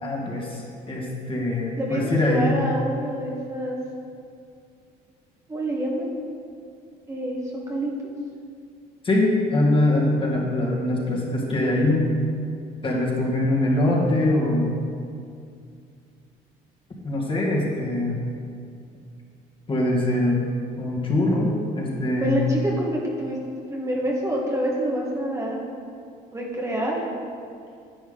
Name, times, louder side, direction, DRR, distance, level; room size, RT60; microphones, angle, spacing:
voice 1, 0.0-2.5 9.0-12.1 12.8-14.7 17.0-18.1 19.7-20.5 20.8-22.4, left 1 dB, 30° left, -3 dB, 2.1 m, -23 dB
voice 2, 1.8-3.8 5.5-6.1 7.1-7.4 7.7-7.9 22.2-23.4 23.7-25.6 26.3-27.0, right 1 dB, 20° right, -3 dB, 1.6 m, -26 dB
10.5 x 8.0 x 3.9 m, 2.3 s
cardioid pair, 110°, 17 cm